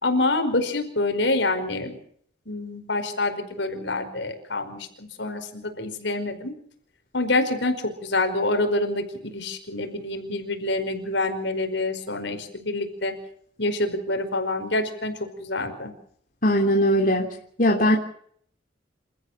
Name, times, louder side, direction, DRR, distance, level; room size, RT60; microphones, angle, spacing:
voice 1, 0.0-1.9 2.5-6.5 7.1-13.1 13.6-15.1 15.4-15.9, left 2 dB, 70° left, 7 dB, 5.1 m, -26 dB
voice 2, 16.4-18.0, equal, 45° left, 0 dB, 3.4 m, -20 dB
29.0 x 14.5 x 7.4 m, 0.62 s
head